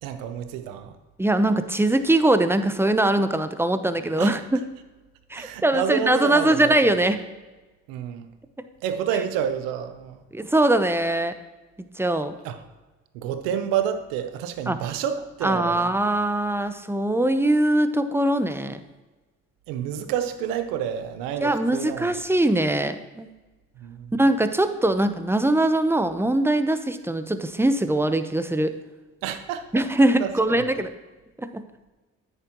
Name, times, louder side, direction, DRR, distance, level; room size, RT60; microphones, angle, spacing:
voice 1, 0.0-1.0 4.2-4.3 5.3-6.9 7.9-8.3 8.8-10.2 12.4-12.6 13.1-15.9 19.7-22.2 23.8-24.1 29.2-30.7, right 9 dB, 85° right, 9 dB, 0.8 m, -29 dB
voice 2, 1.2-4.6 5.3-7.2 10.3-11.3 12.0-12.3 14.7-14.8 15.4-18.8 21.4-23.3 24.2-28.7 29.7-30.9 31.4-31.6, right 1 dB, 5° right, 9 dB, 0.9 m, -22 dB
10.0 x 8.9 x 3.0 m, 1.2 s
supercardioid pair, 60°, 32 cm